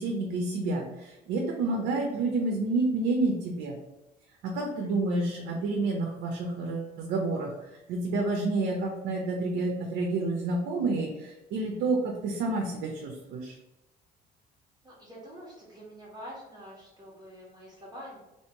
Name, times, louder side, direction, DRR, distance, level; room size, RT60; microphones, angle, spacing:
voice 1, 0.0-3.7 4.4-7.5 7.9-13.6, right 2 dB, 85° right, 1 dB, 0.8 m, -29 dB
voice 2, 4.6-4.9 14.8-18.2, equal, 25° right, -5 dB, 1.5 m, -46 dB
3.1 x 2.9 x 4.5 m, 0.98 s
cardioid pair, 110°, 17 cm